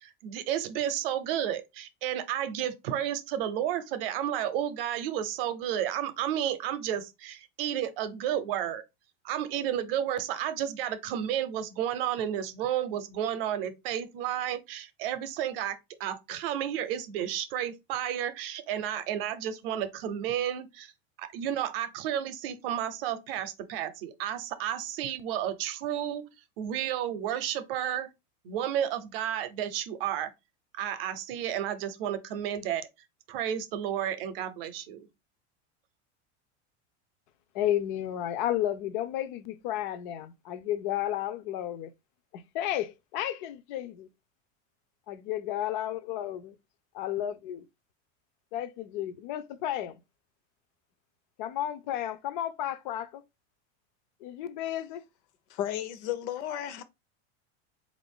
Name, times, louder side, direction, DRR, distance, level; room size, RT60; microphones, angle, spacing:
voice 1, 0.0-8.8 9.2-20.9 21.2-26.3 26.6-28.1 28.4-30.3 30.8-32.9 33.3-35.1, right 10 dB, 55° right, 0.7 m, -32 dB
voice 2, 37.5-41.9 42.3-44.1 45.1-46.5 46.9-47.6 48.5-50.0 51.4-53.2 54.2-55.0, left 12 dB, 45° left, 0.4 m, -32 dB
voice 3, 55.5-56.8, left 11 dB, 75° left, 0.7 m, -33 dB
4.0 x 2.5 x 3.5 m
supercardioid pair, 175°, 34 cm